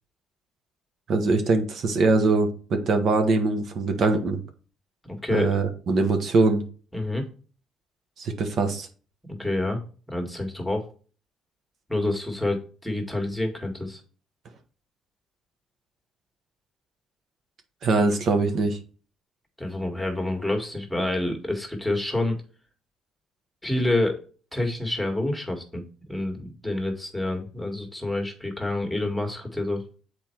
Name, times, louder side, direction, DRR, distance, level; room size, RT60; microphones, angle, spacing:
voice 1, 1.1-4.4 5.3-6.6 8.2-8.9 17.8-18.8, right 3 dB, 55° right, 5 dB, 1.2 m, -22 dB
voice 2, 5.0-5.5 6.9-7.3 9.3-9.8 10.1-10.9 11.9-14.0 19.6-22.4 23.6-24.2 24.5-25.8 26.1-29.8, left 1 dB, ahead, 3 dB, 1.9 m, -28 dB
7.1 x 4.5 x 4.6 m, 0.38 s
cardioid pair, 105°, 0 cm